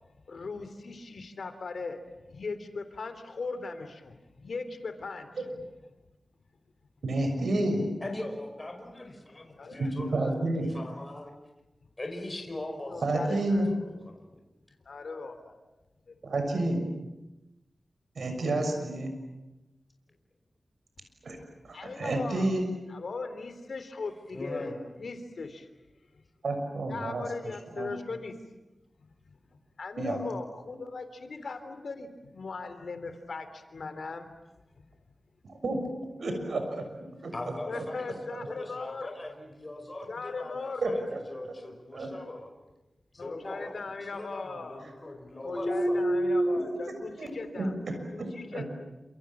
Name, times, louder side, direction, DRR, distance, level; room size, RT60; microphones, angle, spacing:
voice 1, 0.3-2.0 2.3-5.3 9.5-9.9 10.2-10.3 12.9-13.7 14.8-15.6 16.1-16.2 21.3-21.5 21.7-22.5 22.9-25.7 26.9-28.3 29.0-29.1 29.8-34.3 34.7-34.8 37.7-39.1 40.1-40.8 43.2-44.8 45.4-47.7 48.1-48.6, left 4 dB, 75° left, 9 dB, 3.4 m, -39 dB
voice 2, 7.0-7.8 9.7-10.7 13.0-13.7 16.2-16.8 18.1-19.1 21.2-21.4 21.6-22.7 26.4-27.2 27.8-27.9 30.0-30.2 35.5-36.9 37.2-37.3 37.7-37.8 38.3-38.5 40.8-41.5 41.9-42.1 45.5-48.7, right 1 dB, 85° right, 5 dB, 6.5 m, -30 dB
voice 3, 8.0-11.3 12.0-13.3 13.7-14.3 24.3-24.8 37.3-42.5 43.1-46.0, left 1 dB, 30° left, 3 dB, 5.4 m, -41 dB
29.5 x 27.0 x 7.4 m, 1.0 s
wide cardioid pair, 70°, 0 cm